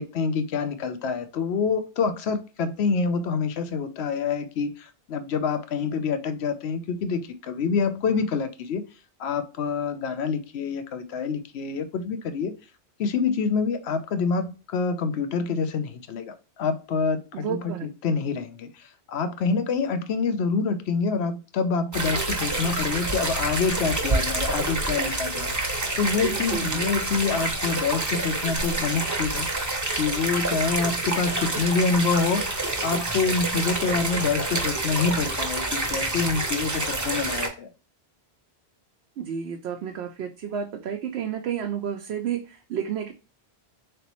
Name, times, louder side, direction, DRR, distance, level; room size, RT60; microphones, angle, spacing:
voice 1, 0.0-8.8 9.2-12.5 13.0-29.5 30.0-32.6 32.8-37.7, left 5 dB, 80° left, 10 dB, 0.9 m, -26 dB
voice 2, 17.3-17.9 26.2-26.8 39.2-43.1, right 8 dB, 75° right, 3 dB, 0.8 m, -31 dB
sound 1, 21.9-37.5, right 2 dB, 20° right, 0.7 m, -27 dB
4.0 x 3.3 x 2.9 m, 0.33 s
omnidirectional pair, 1.1 m